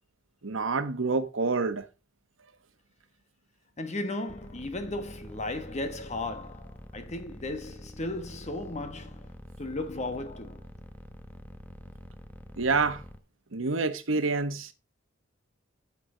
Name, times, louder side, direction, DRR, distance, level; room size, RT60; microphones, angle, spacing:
voice 1, 0.4-1.8 12.6-13.0 13.5-14.7, right 4 dB, 80° right, 1.0 m, -27 dB
voice 2, 3.8-9.3 9.6-10.6, left 2 dB, 35° left, 1.2 m, -35 dB
sound 1, 4.3-13.2, equal, 10° left, 0.9 m, -46 dB
9.4 x 5.9 x 3.8 m
head